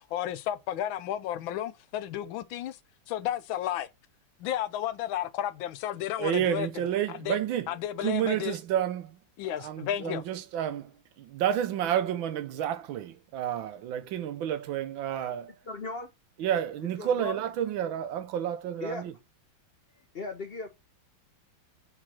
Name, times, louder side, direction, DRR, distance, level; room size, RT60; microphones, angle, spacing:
voice 1, 0.0-2.8 3.1-3.9 4.4-6.7 7.1-7.4 7.7-8.6 9.4-10.2, left 11 dB, 85° left, 1.4 m, -32 dB
voice 2, 6.2-7.7 8.0-9.2 9.6-10.9 11.2-15.5 16.4-19.1, right 10 dB, 80° right, 1.5 m, -30 dB
voice 3, 15.6-16.1 17.0-17.4 18.8-19.0 20.1-20.7, left 3 dB, 50° left, 0.7 m, -37 dB
4.8 x 4.2 x 5.6 m
omnidirectional pair, 2.1 m